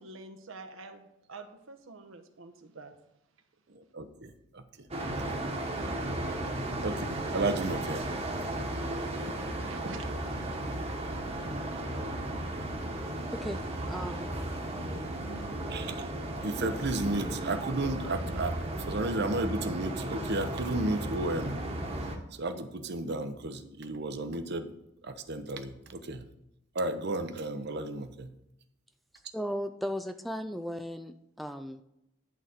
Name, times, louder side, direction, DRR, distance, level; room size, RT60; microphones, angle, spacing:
voice 1, 0.0-2.9 9.2-10.5, right 3 dB, 80° right, 6 dB, 1.1 m, -46 dB
voice 2, 3.7-4.9 5.2-5.3 6.8-8.0 15.7-16.1 16.4-21.6 22.4-24.7 25.0-26.2 26.7-28.3, right 2 dB, 55° right, 9 dB, 0.9 m, -33 dB
sound 1, 4.9-22.2, right 1 dB, 30° right, 1.3 m, -35 dB
voice 3, 13.9-14.3 29.3-31.8, equal, ahead, 8 dB, 0.4 m, -36 dB
11.0 x 4.1 x 7.7 m, 0.84 s
head